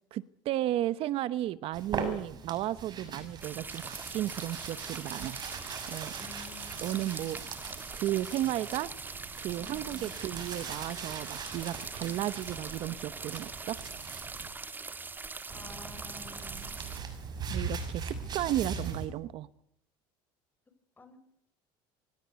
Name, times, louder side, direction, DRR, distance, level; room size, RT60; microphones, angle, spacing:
voice 1, 0.1-5.4 5.9-6.1 6.8-7.4 7.9-8.9 9.4-13.8 17.5-19.5, right 13 dB, 60° right, 16 dB, 1.0 m, -34 dB
sound 1, 1.7-14.5 15.5-19.1, right 5 dB, 40° right, 6.5 m, -41 dB
sound 2, 3.4-17.0, right 4 dB, 15° right, 1.8 m, -42 dB
voice 2, 6.2-7.4 9.6-10.3 11.9-12.3 15.5-16.8 18.5-19.0 21.0-21.2, left 4 dB, 15° left, 9 dB, 6.1 m, -52 dB
24.5 x 19.5 x 8.2 m, 0.72 s
cardioid pair, 125°, 11 cm